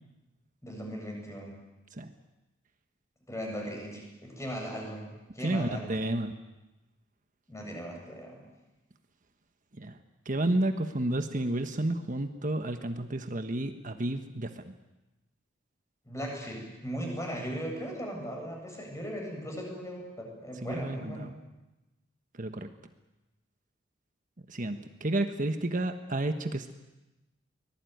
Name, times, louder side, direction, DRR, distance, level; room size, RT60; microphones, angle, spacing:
voice 1, 0.6-1.5 3.3-5.9 7.5-8.5 16.0-21.3, equal, 15° left, 0 dB, 8.0 m, -38 dB
voice 2, 5.4-6.3 9.8-10.0 10.2-14.7 20.6-21.3 22.4-22.7 24.5-26.7, right 1 dB, 40° right, 7 dB, 1.3 m, -31 dB
24.5 x 19.5 x 9.4 m, 1.0 s
head